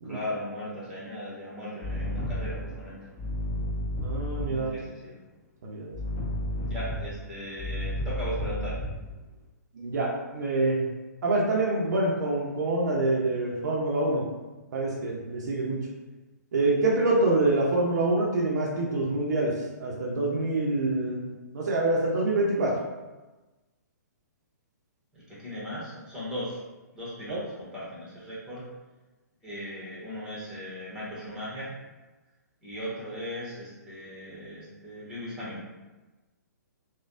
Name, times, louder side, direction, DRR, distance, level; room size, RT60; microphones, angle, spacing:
voice 1, 0.0-3.0 4.5-5.2 6.6-8.8 25.1-26.6 26.9-28.6 29.4-31.7 32.6-35.6, equal, 5° right, -9 dB, 1.3 m, -38 dB
sound 1, 1.8-4.8 5.9-9.2, left 1 dB, 25° left, 1.4 m, -32 dB
voice 2, 4.0-4.7 5.6-5.9 9.7-10.9 11.2-14.2 14.7-15.8 16.5-19.5 19.8-22.8 27.3-27.4, right 2 dB, 65° right, -3 dB, 0.7 m, -26 dB
3.2 x 2.3 x 2.6 m, 1.2 s
hypercardioid pair, 135°, 10 cm